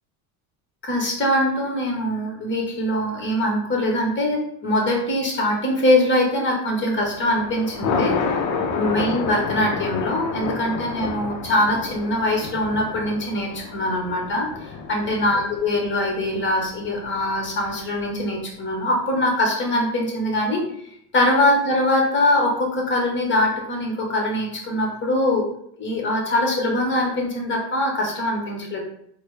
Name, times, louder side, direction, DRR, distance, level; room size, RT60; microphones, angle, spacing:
voice 1, 0.8-8.3 8.6-20.6 21.1-25.4 25.8-28.8, left 1 dB, 25° left, 0 dB, 1.1 m, -22 dB
Thunder, 7.0-18.3, left 5 dB, 40° left, 0.5 m, -30 dB
4.1 x 2.1 x 3.2 m, 0.69 s
cardioid pair, 125°, 49 cm